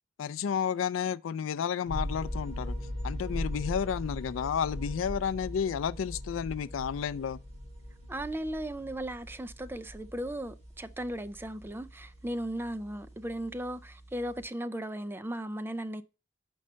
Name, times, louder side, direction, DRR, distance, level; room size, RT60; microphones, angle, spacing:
voice 1, 0.2-2.8 3.0-7.4, left 7 dB, 85° left, 0.3 m, -31 dB
sound 1, 1.9-14.4, equal, 35° right, 4.8 m, -40 dB
voice 2, 8.1-16.0, right 1 dB, 10° right, 0.4 m, -36 dB
5.5 x 5.4 x 6.2 m
head